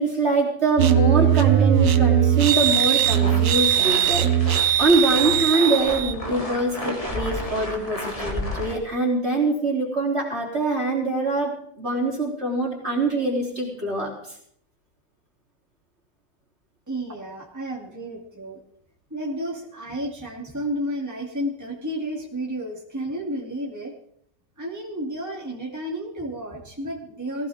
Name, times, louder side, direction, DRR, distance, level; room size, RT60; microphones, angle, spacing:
voice 1, 0.0-14.1, right 2 dB, 40° right, -2 dB, 3.9 m, -24 dB
sound 1, 0.8-6.1, right 10 dB, 60° right, 1.2 m, -19 dB
sound 2, 3.0-8.8, left 1 dB, 20° left, 2.9 m, -32 dB
voice 2, 16.9-18.6 19.1-23.9 24.6-27.5, equal, 10° right, -4 dB, 2.8 m, -31 dB
19.5 x 16.0 x 3.7 m, 0.68 s
omnidirectional pair, 1.8 m